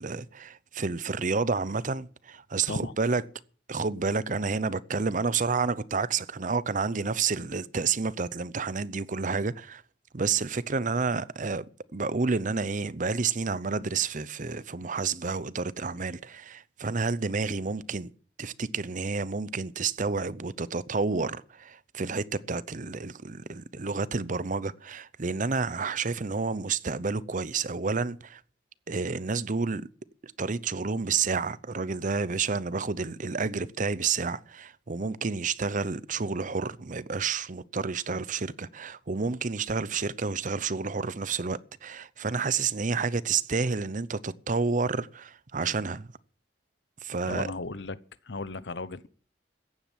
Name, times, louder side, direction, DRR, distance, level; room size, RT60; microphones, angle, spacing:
voice 1, 0.0-3.2 3.7-9.8 10.1-11.6 11.9-18.1 18.4-28.4 28.9-29.9 30.2-46.1 47.0-47.5, right 4 dB, 45° right, 0.7 m, -30 dB
voice 2, 47.3-48.0 48.3-49.1, left 3 dB, 80° left, 0.9 m, -35 dB
14.5 x 10.5 x 7.4 m
head